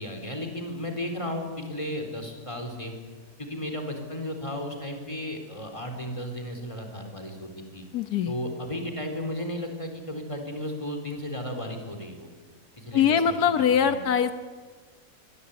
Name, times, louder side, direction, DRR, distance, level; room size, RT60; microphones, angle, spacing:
voice 1, 0.0-2.9 3.4-7.8 8.3-12.3 12.8-14.0, left 1 dB, 20° left, 4 dB, 4.3 m, -34 dB
voice 2, 7.9-8.3 12.9-14.3, left 8 dB, 85° left, 9 dB, 1.5 m, -22 dB
25.0 x 22.0 x 8.7 m, 1.4 s
omnidirectional pair, 1.6 m